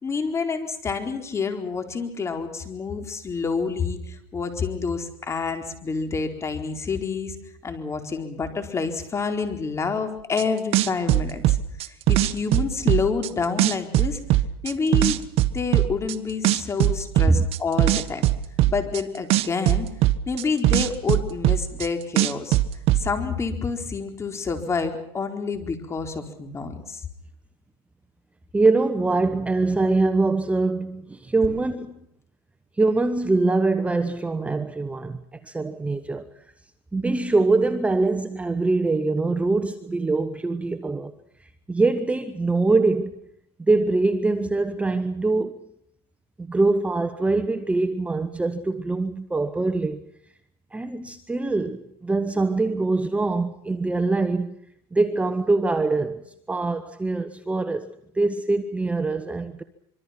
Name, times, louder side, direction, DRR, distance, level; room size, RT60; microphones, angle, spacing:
voice 1, 0.0-7.4 7.6-14.2 14.6-15.2 15.5-18.3 18.7-19.9 20.3-22.6 23.0-27.0, left 4 dB, 20° left, 4.3 m, -28 dB
sound 1, 10.4-10.5 10.7-13.3 13.6-16.1 16.4-19.0 19.3-21.9 22.2-23.0, right 15 dB, 50° right, 1.4 m, -20 dB
voice 2, 28.5-32.0 32.8-36.3 36.9-41.1 41.4-43.2 43.7-45.7 46.4-50.0 50.7-54.6 54.9-59.6, right 3 dB, 10° right, 1.2 m, -23 dB
25.5 x 24.0 x 6.0 m
supercardioid pair, 120°, 13 cm